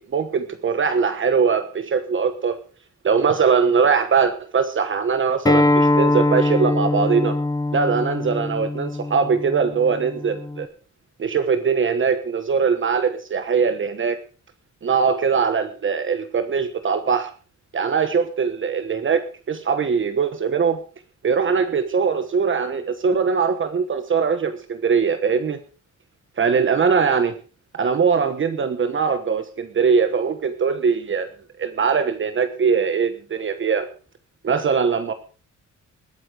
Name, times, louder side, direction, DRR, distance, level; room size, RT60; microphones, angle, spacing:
voice 1, 0.0-2.6 3.0-7.4 7.7-10.7 11.2-14.2 14.8-17.3 17.7-20.8 21.2-25.6 26.4-27.3 27.7-31.3 31.6-33.9 34.4-35.1, right 6 dB, 40° right, 9 dB, 1.2 m, -21 dB
Acoustic guitar, 5.5-10.7, left 2 dB, 15° left, 0.8 m, -22 dB
20.5 x 8.8 x 5.0 m, 0.37 s
wide cardioid pair, 180°, 31 cm